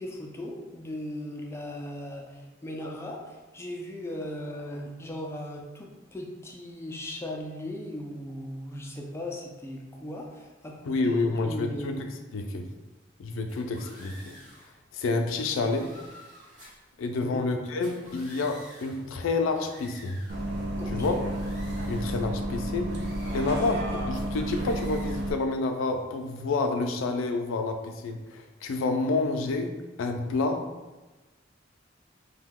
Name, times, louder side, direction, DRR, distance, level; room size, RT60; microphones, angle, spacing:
voice 1, 0.0-11.9 17.2-17.5 20.8-21.2, left 1 dB, 15° left, 0 dB, 0.3 m, -38 dB
voice 2, 10.9-12.7 13.2-14.3 14.9-15.9 17.0-20.2 20.9-21.2 21.9-22.9 23.3-29.7 30.0-30.6, left 3 dB, 90° left, 5 dB, 0.4 m, -29 dB
sound 1, 13.5-14.7 15.2-16.9 17.7-19.1 19.4-20.7 21.0-22.2 22.8-23.8 24.1-25.4, equal, 40° right, 1.3 m, -51 dB
Bus, 20.3-25.3, right 1 dB, 60° right, 0.5 m, -31 dB
2.7 x 2.2 x 3.5 m, 1.2 s
head